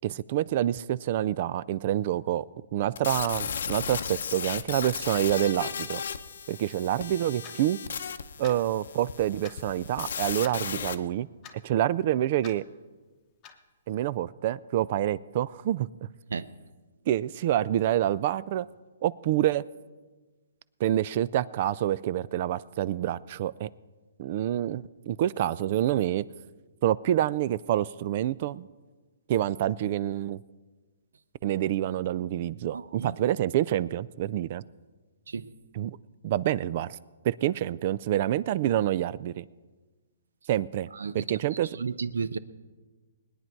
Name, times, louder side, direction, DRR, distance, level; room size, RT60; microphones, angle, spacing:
voice 1, 0.0-2.4 2.7-6.0 6.5-7.8 8.4-11.3 11.6-12.6 13.9-15.9 17.1-18.7 19.0-19.6 20.8-23.7 24.2-26.3 26.8-28.7 29.3-30.4 31.4-34.6 35.8-36.0 36.2-36.9 37.2-39.4 40.5-40.9 41.1-41.7, right 12 dB, 35° right, 20 dB, 0.3 m, -27 dB
sound 1, 3.0-10.9, left 7 dB, 65° left, 0.7 m, -35 dB
Clock, 7.4-7.6 8.4-8.6 9.4-9.6 10.4-10.6 11.4-11.6 12.4-12.6 13.4-13.6, left 8 dB, 20° left, 0.9 m, -46 dB
voice 2, 32.7-33.2 35.3-35.5 40.9-42.4, right 5 dB, 85° right, 16 dB, 0.6 m, -34 dB
20.5 x 9.6 x 4.6 m, 1.3 s
hypercardioid pair, 165°, 0 cm